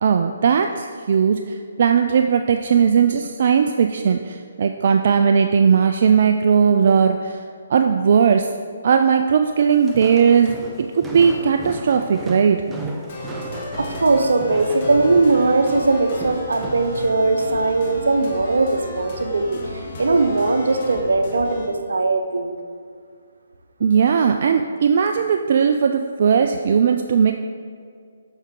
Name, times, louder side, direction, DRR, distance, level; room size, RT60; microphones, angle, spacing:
voice 1, 0.0-7.4 7.7-8.5 8.8-10.6 10.9-12.6 23.8-27.3, right 6 dB, 55° right, 5 dB, 0.3 m, -18 dB
Walk footsteps, 9.7-16.9, right 2 dB, 10° right, 0.6 m, -35 dB
sound 1, 13.1-21.7, left 2 dB, 40° left, 1.4 m, -34 dB
voice 2, 13.8-19.6 20.0-22.5, right 3 dB, 80° right, 6 dB, 0.8 m, -19 dB
7.0 x 5.8 x 3.7 m, 2.2 s
hypercardioid pair, 145°, 0 cm